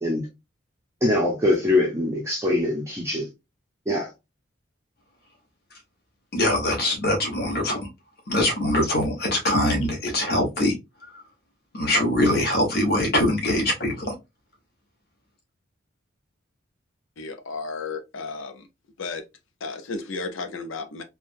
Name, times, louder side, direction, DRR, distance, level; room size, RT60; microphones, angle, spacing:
voice 1, 1.0-3.3 3.9-4.1, left 1 dB, 15° right, 0.6 m, -23 dB
voice 2, 6.3-7.9 8.3-10.7 11.0-11.2 11.7-14.1, left 1 dB, 50° left, 1.2 m, -23 dB
voice 3, 17.2-18.7 19.0-19.2 19.6-21.0, left 4 dB, 80° left, 0.6 m, -33 dB
3.4 x 2.2 x 2.5 m
head